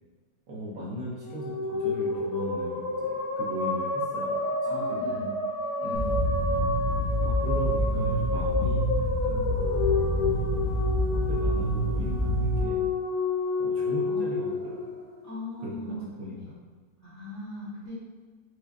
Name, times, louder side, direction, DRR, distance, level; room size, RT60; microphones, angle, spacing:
voice 1, 0.5-4.4 4.7-5.2 5.8-6.0 7.2-9.5 10.7-12.8 13.6-15.0 15.6-16.3, right 1 dB, 70° right, -5 dB, 1.0 m, -38 dB
sound 1, 1.1-15.6, left 2 dB, 90° left, 1.2 m, -30 dB
voice 2, 4.6-5.3 5.8-6.3 14.0-14.4 15.2-16.1 16.4-16.5 17.0-17.9, left 1 dB, 10° left, -11 dB, 0.9 m, -39 dB
sound 2, 5.9-12.6, equal, 60° left, 0.7 m, -27 dB
4.6 x 2.2 x 2.4 m, 1.3 s
omnidirectional pair, 1.8 m